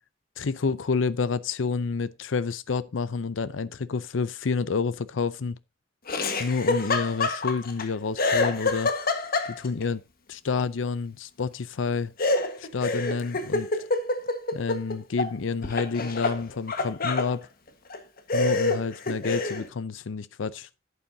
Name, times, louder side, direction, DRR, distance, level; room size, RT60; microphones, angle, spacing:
voice 1, 0.4-5.6 6.4-8.9 9.6-10.0 10.3-12.1 12.6-13.7 14.5-17.5 18.3-20.7, left 4 dB, 90° left, 0.6 m, -29 dB
Laughter, 6.1-7.8 8.2-9.8 12.2-15.3 15.6-17.3 17.9-18.0 18.3-19.7, left 3 dB, 50° left, 1.5 m, -27 dB
11.5 x 8.3 x 2.7 m
head